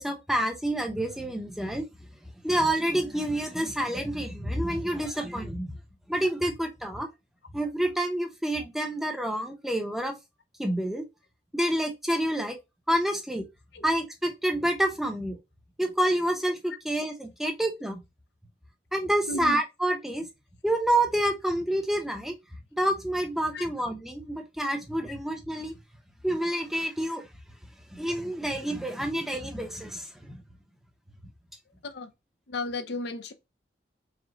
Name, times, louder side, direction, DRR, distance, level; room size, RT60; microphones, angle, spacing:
voice 1, 0.0-1.9 2.4-5.8 6.1-7.1 7.5-10.1 10.6-11.1 11.5-12.6 12.9-13.4 13.8-15.4 15.8-18.0 18.9-20.3 20.6-22.3 22.8-25.7 26.2-27.2 27.9-30.4, right 1 dB, ahead, 0.7 m, -28 dB
voice 2, 19.3-19.6 23.5-23.7 31.8-32.1 32.5-33.3, left 2 dB, 60° left, 0.6 m, -34 dB
4.9 x 2.2 x 3.9 m
head